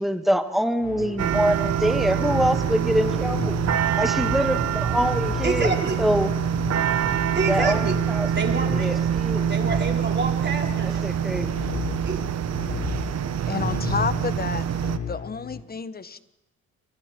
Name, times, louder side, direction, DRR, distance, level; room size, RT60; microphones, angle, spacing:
voice 1, 0.0-3.6 4.0-6.3 7.5-9.5 10.8-11.6, equal, ahead, 6 dB, 2.3 m, -25 dB
sound 1, 0.8-15.6, left 5 dB, 55° left, 3.9 m, -34 dB
sound 2, 1.2-15.0, right 9 dB, 60° right, 1.1 m, -25 dB
voice 2, 5.4-6.0 7.3-7.9 8.3-9.0 9.4-11.0 12.1-12.2, right 4 dB, 35° right, 1 dB, 4.6 m, -28 dB
voice 3, 13.4-14.7 15.1-16.2, left 5 dB, 30° left, 13 dB, 1.3 m, -30 dB
29.0 x 24.0 x 4.6 m, 0.99 s
cardioid pair, 90°, 30 cm